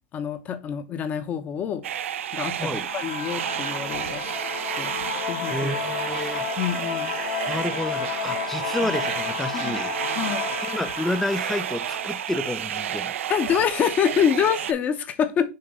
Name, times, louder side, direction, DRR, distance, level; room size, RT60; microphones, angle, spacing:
voice 1, 0.1-1.8 2.3-4.2 4.8-5.0 5.3-5.7 6.1-7.1 8.8-8.9 9.5-9.8 10.1-10.4 13.3-15.5, left 8 dB, 25° left, 0.8 m, -26 dB
sound 1, 1.8-14.7, right 10 dB, 85° right, 0.5 m, -31 dB
sound 2, 2.8-13.2, left 9 dB, 55° left, 1.0 m, -33 dB
voice 2, 5.5-6.5 7.5-9.9 10.6-13.1, left 1 dB, 5° left, 0.4 m, -30 dB
6.6 x 2.9 x 5.3 m
supercardioid pair, 150°, 7 cm